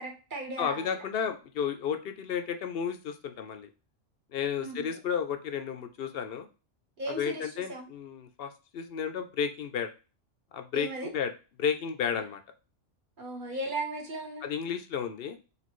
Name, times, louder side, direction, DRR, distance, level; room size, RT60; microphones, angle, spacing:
voice 1, 0.0-1.0 4.6-4.9 7.0-7.9 10.7-11.1 12.1-12.2 13.2-14.5, right 2 dB, 45° right, 1 dB, 1.1 m, -37 dB
voice 2, 0.6-3.7 4.3-6.5 7.1-9.9 10.5-11.3 11.6-12.4 14.4-15.4, left 7 dB, 60° left, 7 dB, 0.7 m, -32 dB
4.2 x 3.1 x 3.0 m, 0.32 s
omnidirectional pair, 1.3 m